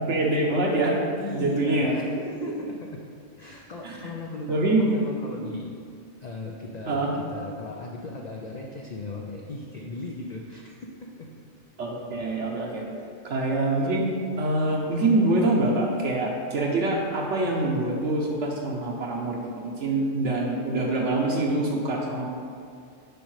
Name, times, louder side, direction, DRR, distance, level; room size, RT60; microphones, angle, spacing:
voice 1, 0.0-1.0 1.3-1.9 2.4-2.5 3.8-4.0 4.5-4.8 6.9-7.1 11.8-12.8 13.2-22.3, right 2 dB, 65° right, -1 dB, 1.1 m, -25 dB
voice 2, 1.2-3.0 3.4-5.7 6.2-11.4, left 2 dB, 70° left, 0 dB, 0.4 m, -37 dB
7.9 x 5.2 x 3.2 m, 2.3 s
omnidirectional pair, 1.4 m